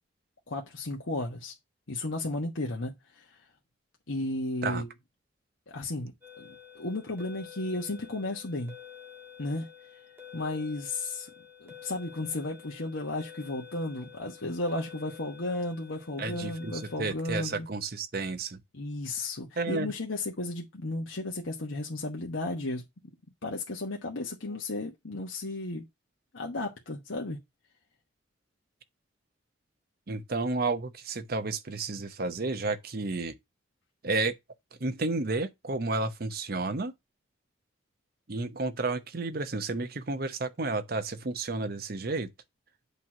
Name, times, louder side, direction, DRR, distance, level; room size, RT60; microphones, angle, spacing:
voice 1, 0.5-1.5 1.9-3.4 4.1-4.9 5.7-6.1 6.4-8.7 9.4-9.7 10.3-11.3 11.6-17.7 18.7-22.8 23.4-25.9 26.3-27.4, left 2 dB, 85° left, 1.1 m, -34 dB
sound 1, 6.2-17.0, left 8 dB, 10° right, 1.6 m, -49 dB
voice 2, 16.2-18.6 19.6-19.9 30.1-33.3 34.0-34.3 34.8-36.9 38.3-42.3, right 3 dB, 50° right, 0.7 m, -31 dB
8.3 x 3.0 x 5.9 m
head